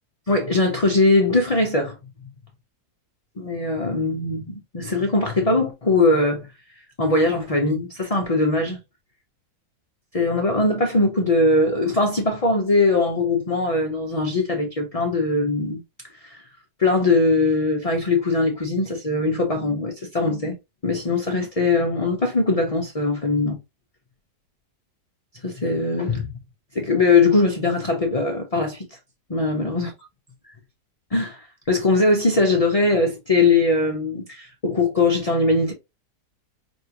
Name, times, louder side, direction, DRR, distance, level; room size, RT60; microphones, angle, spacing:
voice 1, 0.3-2.0 3.4-6.5 7.0-8.8 10.1-15.8 16.1-16.4 16.8-20.6 20.8-23.6 25.4-26.3 26.7-28.9 29.3-29.9 30.4-30.5 31.1-35.7, left 3 dB, 40° left, 0.5 m, -21 dB
5.3 x 2.6 x 2.9 m
omnidirectional pair, 1.8 m